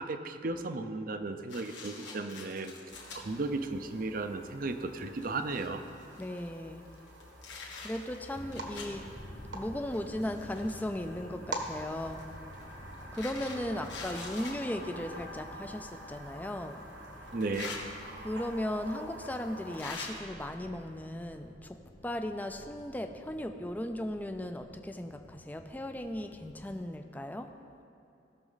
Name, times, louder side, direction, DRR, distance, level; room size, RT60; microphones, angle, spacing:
voice 1, 0.0-2.7 3.2-5.8 17.3-17.7, right 3 dB, 50° right, 8 dB, 0.5 m, -35 dB
sound 1, 1.5-3.2 3.9-4.0 4.7-4.8 5.1-6.5 7.0-9.0 9.9-11.0 12.0-14.6 15.8-15.9 17.3-17.8 18.8-18.9 19.7-20.1, left 4 dB, 75° left, 1.9 m, -45 dB
sound 2, 2.9-19.8, right 1 dB, 75° right, 1.4 m, -47 dB
voice 2, 6.2-6.8 7.8-9.0 9.5-12.2 13.1-16.8 18.2-21.8 22.0-27.5, left 1 dB, 10° left, 6 dB, 0.4 m, -37 dB
sound 3, 8.3-26.9, equal, 60° left, 1.6 m, -52 dB
17.0 x 6.3 x 4.0 m, 2.8 s
head